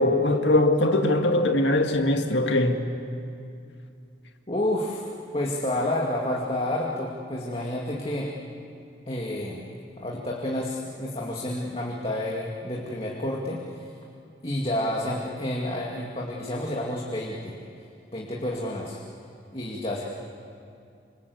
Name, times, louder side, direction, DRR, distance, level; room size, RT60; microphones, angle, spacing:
voice 1, 0.0-2.8, left 1 dB, 75° left, 2.0 m, -21 dB
voice 2, 4.5-5.0 5.3-8.3 9.0-9.7 10.0-13.9 14.4-17.6 18.1-19.0 19.5-20.0, left 1 dB, 30° left, 2.3 m, -29 dB
26.5 x 26.5 x 8.1 m
head